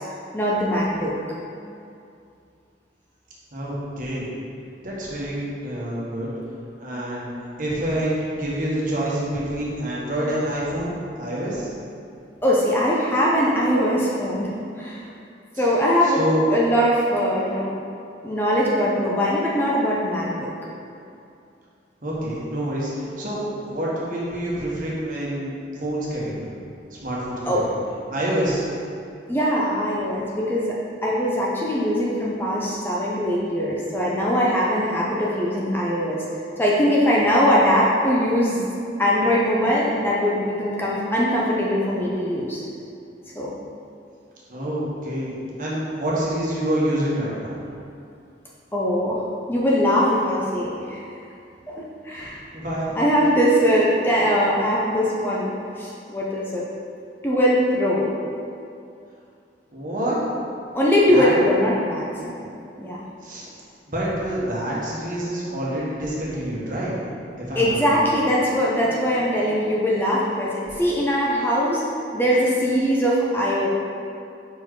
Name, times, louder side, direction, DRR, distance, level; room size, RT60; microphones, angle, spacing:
voice 1, 0.3-1.1 12.4-15.1 15.6-17.8 18.2-20.5 27.4-27.7 29.3-36.2 36.6-38.6 39.0-42.6 43.4-43.5 48.7-49.2 49.5-51.0 51.7-52.4 52.9-55.5 55.8-56.6 57.2-58.2 60.7-62.5 62.8-63.0 67.6-71.8 72.1-73.7, equal, 10° left, -5 dB, 0.6 m, -21 dB
voice 2, 3.5-4.3 4.8-6.3 6.8-7.3 7.6-11.7 15.5-15.6 16.0-16.5 22.0-26.5 26.9-27.8 28.1-28.6 44.5-47.6 52.1-52.3 52.5-52.9 59.7-60.2 61.1-61.3 63.2-63.4 63.9-67.0 67.4-68.0 70.6-70.8, right 1 dB, 45° right, -6 dB, 1.3 m, -27 dB
5.2 x 4.5 x 4.7 m, 2.5 s
head